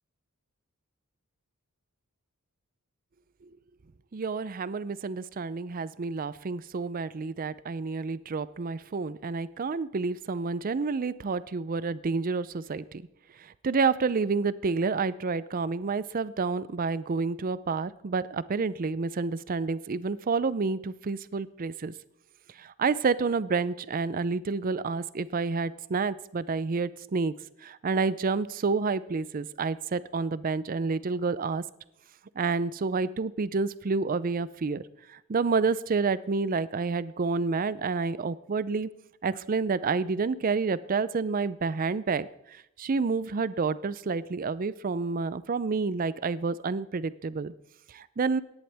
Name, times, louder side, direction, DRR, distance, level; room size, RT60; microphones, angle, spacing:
voice 1, 4.1-13.0 13.6-21.9 22.6-27.3 27.6-31.6 32.4-34.8 35.3-38.9 39.2-42.3 42.8-47.5 47.9-48.4, right 4 dB, 40° right, 17 dB, 0.4 m, -29 dB
16.5 x 10.5 x 3.4 m, 0.83 s
head